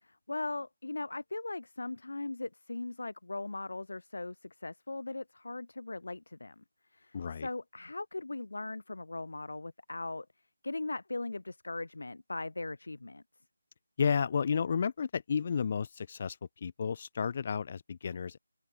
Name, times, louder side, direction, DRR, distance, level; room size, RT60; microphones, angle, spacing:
voice 1, 0.0-6.6 6.9-10.3 10.6-13.2, left 2 dB, 70° left, 0.4 m, -39 dB
voice 2, 7.1-7.5 14.0-18.4, left 6 dB, 40° left, 0.8 m, -32 dB
open air
figure-of-eight pair, 160°, 0 cm